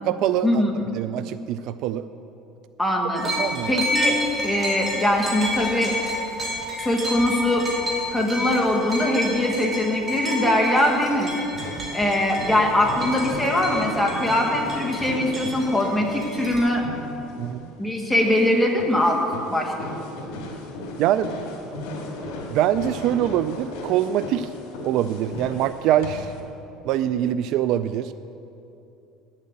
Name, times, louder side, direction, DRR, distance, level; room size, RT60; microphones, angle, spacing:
voice 1, 0.0-2.1 3.4-3.8 17.4-17.7 21.0-21.4 22.5-24.5 24.8-26.3 26.8-28.1, right 11 dB, 55° right, 13 dB, 0.3 m, -24 dB
voice 2, 2.8-3.3 3.7-5.9 6.8-7.7 8.1-11.3 11.9-16.8 17.8-19.2 19.5-19.9, left 1 dB, ahead, -1 dB, 1.4 m, -22 dB
sound 1, 3.1-16.6, equal, 30° right, 2.5 m, -31 dB
sound 2, 11.5-26.4, left 2 dB, 80° left, 2.2 m, -36 dB
9.5 x 7.4 x 8.4 m, 2.8 s
cardioid pair, 145°, 0 cm